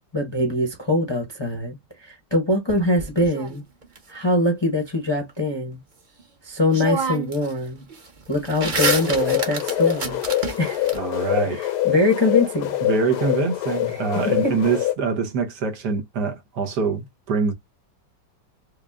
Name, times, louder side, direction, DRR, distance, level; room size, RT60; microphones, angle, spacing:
voice 1, 0.1-3.6 4.1-5.8 6.4-7.8 8.3-10.2 10.6-10.9 11.5-12.7 13.9-14.0 14.4-14.5, left 1 dB, 20° left, 0.7 m, -23 dB
sound 1, 2.7-4.0 6.2-6.3 6.7-7.5 7.8-11.0, right 3 dB, 35° right, 0.9 m, -28 dB
sound 2, 8.8-14.9, left 14 dB, 70° left, 1.3 m, -25 dB
voice 2, 10.9-11.6 12.8-17.5, right 4 dB, 70° right, 1.5 m, -24 dB
4.9 x 2.5 x 2.3 m
omnidirectional pair, 1.9 m